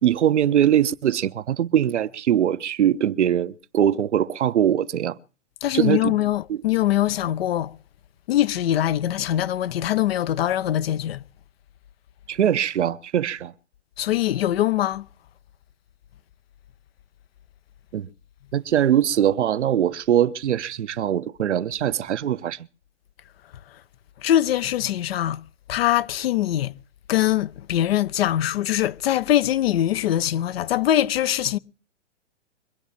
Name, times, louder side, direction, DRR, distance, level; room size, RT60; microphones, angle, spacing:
voice 1, 0.0-5.2 5.7-6.1 6.5-6.6 12.3-13.5 17.9-18.1 18.5-22.6, right 10 dB, 70° right, 1.0 m, -22 dB
voice 2, 5.6-7.7 8.3-11.2 14.0-15.1 23.7-23.8 24.2-25.4 25.7-26.7 27.1-31.6, left 12 dB, 55° left, 0.9 m, -22 dB
24.0 x 8.2 x 7.3 m
hypercardioid pair, 125°, 36 cm